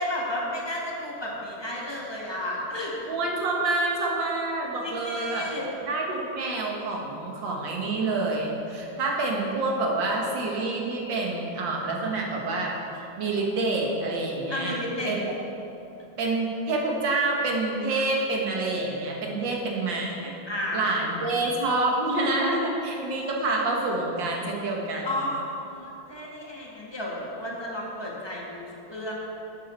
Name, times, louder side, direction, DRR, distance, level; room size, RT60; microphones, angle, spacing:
voice 1, 0.0-3.1 4.8-5.7 14.5-15.1 20.5-20.8 25.0-29.1, left 1 dB, 15° left, -4 dB, 1.2 m, -32 dB
voice 2, 3.1-5.5 5.8-12.8 13.2-14.8 15.1-15.2 16.2-20.3 20.7-25.1, right 2 dB, 70° right, -1 dB, 1.9 m, -27 dB
11.0 x 6.8 x 4.3 m, 2.9 s
omnidirectional pair, 2.1 m